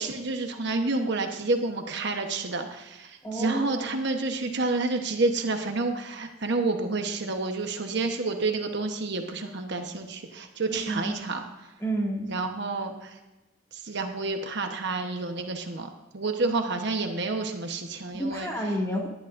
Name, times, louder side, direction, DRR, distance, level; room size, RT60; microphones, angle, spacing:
voice 1, 0.0-11.4 12.2-13.1 13.7-18.5, right 3 dB, 60° right, 4 dB, 1.1 m, -29 dB
voice 2, 3.2-4.0 10.7-11.1 11.8-12.3 18.1-19.1, right 1 dB, 15° left, -1 dB, 2.2 m, -30 dB
19.0 x 11.5 x 2.6 m, 1.1 s
head